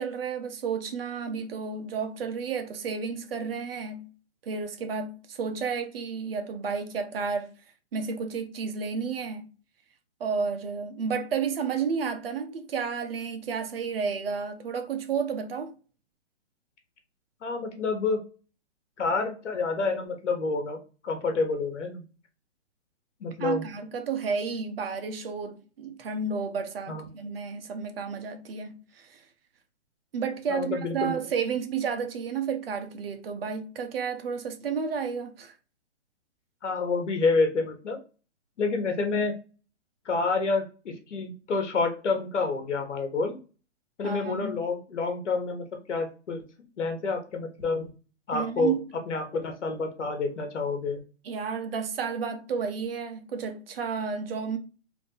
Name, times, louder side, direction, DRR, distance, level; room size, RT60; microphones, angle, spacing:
voice 1, 0.0-4.1 4.4-7.5 7.9-9.5 10.2-15.7 23.4-29.2 30.1-35.5 44.0-44.6 48.3-48.8 51.2-54.6, right 5 dB, 55° right, 0.8 m, -31 dB
voice 2, 17.4-18.2 19.0-20.8 21.0-22.0 23.2-23.7 26.9-27.1 30.5-31.2 36.6-38.0 38.6-39.3 40.0-43.4 44.0-46.4 46.8-47.9 48.3-48.7 49.1-51.0, left 3 dB, 80° left, 1.3 m, -28 dB
3.4 x 2.5 x 3.9 m
hypercardioid pair, 165°, 35 cm